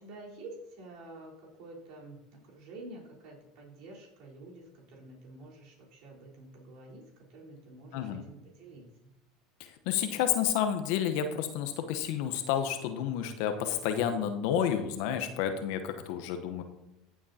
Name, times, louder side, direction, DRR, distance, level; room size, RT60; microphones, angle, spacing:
voice 1, 0.0-1.3 1.6-9.1, right 2 dB, 60° right, -3 dB, 3.8 m, -49 dB
voice 2, 7.9-8.2 9.9-16.6, left 9 dB, 65° left, 8 dB, 0.9 m, -30 dB
15.0 x 7.2 x 2.8 m, 0.92 s
hypercardioid pair, 85°, 0 cm